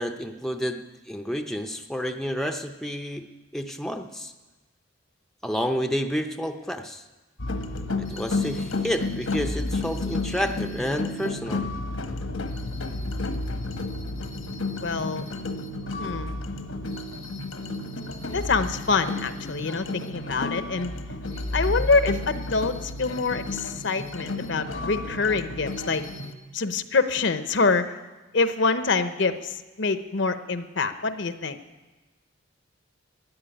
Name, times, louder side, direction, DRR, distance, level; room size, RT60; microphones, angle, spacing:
voice 1, 0.0-3.3 3.5-4.3 5.4-7.0 8.0-11.6, equal, ahead, 5 dB, 0.6 m, -30 dB
sound 1, 7.4-26.3, left 2 dB, 80° left, 1.2 m, -31 dB
voice 2, 14.8-15.2 16.0-16.3 18.3-20.9 21.5-26.1 26.5-27.9 28.3-31.6, left 4 dB, 60° left, 10 dB, 0.8 m, -25 dB
13.5 x 9.7 x 10.0 m, 1.2 s
head